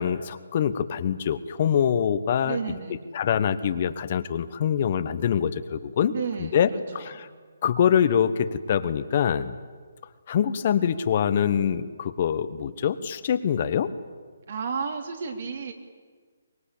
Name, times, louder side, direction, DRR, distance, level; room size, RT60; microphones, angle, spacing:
voice 1, 0.0-2.6 3.1-6.1 6.4-7.3 7.6-9.6 10.3-13.9, left 8 dB, 40° left, 12 dB, 1.2 m, -24 dB
voice 2, 2.4-3.1 6.1-7.3 14.5-15.7, right 5 dB, 55° right, 5 dB, 3.3 m, -33 dB
24.0 x 21.0 x 8.6 m, 1.6 s
hypercardioid pair, 155°, 0 cm